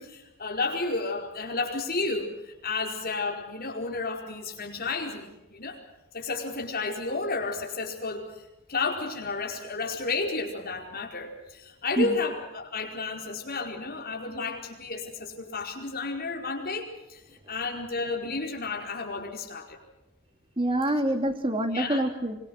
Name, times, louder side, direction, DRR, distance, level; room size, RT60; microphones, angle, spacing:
voice 1, 0.0-5.8 6.1-8.4 8.7-17.2 17.5-19.8 21.7-22.0, left 3 dB, 45° left, 1 dB, 4.8 m, -32 dB
voice 2, 20.6-22.4, right 1 dB, 25° right, 6 dB, 2.5 m, -26 dB
25.5 x 24.0 x 6.4 m, 0.99 s
head